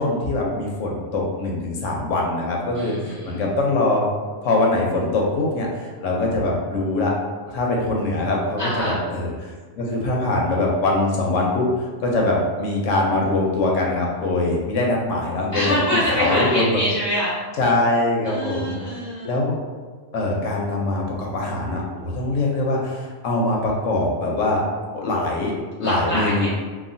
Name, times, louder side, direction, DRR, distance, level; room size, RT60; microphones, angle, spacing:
voice 1, 0.0-4.1 4.4-7.1 7.5-15.8 16.1-16.8 17.6-19.6 20.1-24.6 24.9-26.5, left 2 dB, 80° left, -1 dB, 0.9 m, -23 dB
voice 2, 2.7-3.4 8.6-8.9 15.5-17.3 18.2-19.3 25.8-26.5, equal, 20° right, -9 dB, 0.6 m, -25 dB
2.9 x 2.2 x 2.6 m, 1.5 s
omnidirectional pair, 1.3 m